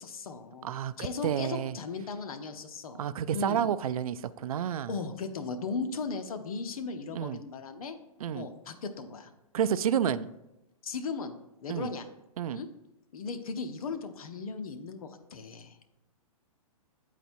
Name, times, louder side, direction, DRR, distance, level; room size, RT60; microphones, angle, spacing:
voice 1, 0.0-3.7 4.9-8.0 8.3-9.3 10.8-12.1 12.5-12.7 13.1-15.8, left 4 dB, 75° left, 7 dB, 0.9 m, -37 dB
voice 2, 0.6-0.9 1.2-1.8 3.0-4.9 7.1-7.4 8.2-8.5 9.5-10.3 11.7-11.9 12.4-12.6, right 9 dB, 75° right, 15 dB, 0.4 m, -30 dB
9.0 x 4.1 x 4.5 m, 0.92 s
hypercardioid pair, 140°, 18 cm